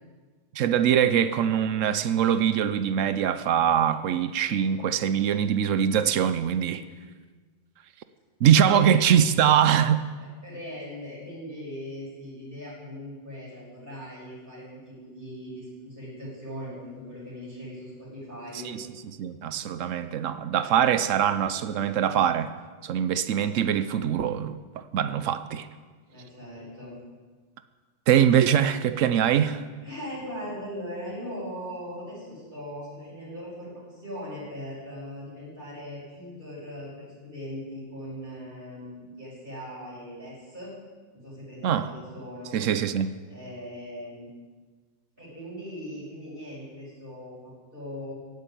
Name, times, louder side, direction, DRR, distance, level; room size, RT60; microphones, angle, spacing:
voice 1, 0.5-6.8 8.4-10.0 18.6-18.9 19.2-22.5 22.8-25.7 28.1-29.6 41.6-41.9 42.5-43.1, right 9 dB, 90° right, 1.1 m, -23 dB
voice 2, 8.6-9.0 10.2-18.7 26.1-26.9 29.1-29.3 29.8-40.7 41.1-42.6 43.3-44.3 45.2-48.1, equal, 45° right, 7.0 m, -40 dB
16.0 x 8.4 x 9.2 m
omnidirectional pair, 1.3 m